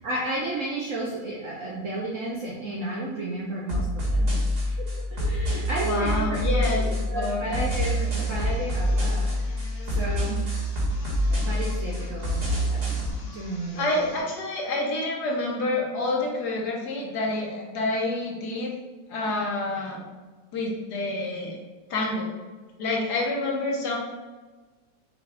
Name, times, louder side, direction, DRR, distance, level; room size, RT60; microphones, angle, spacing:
voice 1, 0.0-4.4 4.6-10.4 11.3-13.0 13.3-14.1, right 1 dB, 65° right, -3 dB, 0.8 m, -33 dB
sound 1, 3.7-13.1, equal, 45° right, 1.6 m, -26 dB
voice 2, 5.8-7.5 13.8-18.7 19.1-20.0 20.5-21.6 21.9-22.3 22.8-24.0, left 2 dB, 65° left, -1 dB, 1.3 m, -28 dB
sound 2, 7.8-14.3, left 1 dB, 45° left, 0.7 m, -48 dB
5.8 x 2.3 x 3.4 m, 1.3 s
omnidirectional pair, 2.0 m